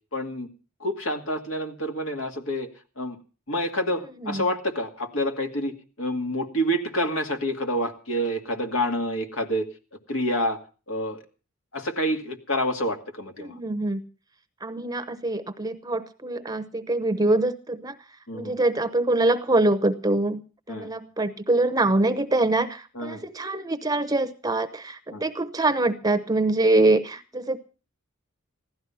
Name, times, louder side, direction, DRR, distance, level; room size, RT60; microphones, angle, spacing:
voice 1, 0.1-0.5 0.8-2.7 3.0-3.2 3.5-9.7 10.1-10.6 10.9-11.2 11.7-13.6 18.3-18.6 20.7-20.9 23.0-23.2 25.1-25.2, equal, 70° left, 5 dB, 2.3 m, -28 dB
voice 2, 13.4-14.0 14.6-18.0 18.3-20.4 20.7-27.6, right 2 dB, 20° right, 12 dB, 0.9 m, -24 dB
16.0 x 13.0 x 5.7 m, 0.37 s
head